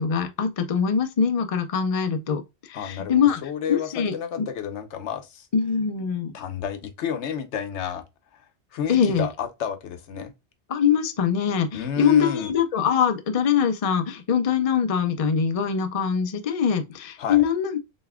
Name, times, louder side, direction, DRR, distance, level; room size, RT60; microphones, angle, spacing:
voice 1, 0.0-2.4 2.7-3.4 3.7-4.5 5.5-6.3 8.9-9.3 10.7-17.8, left 7 dB, 40° left, 0.5 m, -23 dB
voice 2, 2.7-5.5 6.3-8.0 8.3-8.4 8.7-10.3 11.7-12.5 17.2-17.5, left 8 dB, 85° left, 1.0 m, -31 dB
4.2 x 3.4 x 2.2 m
omnidirectional pair, 1.2 m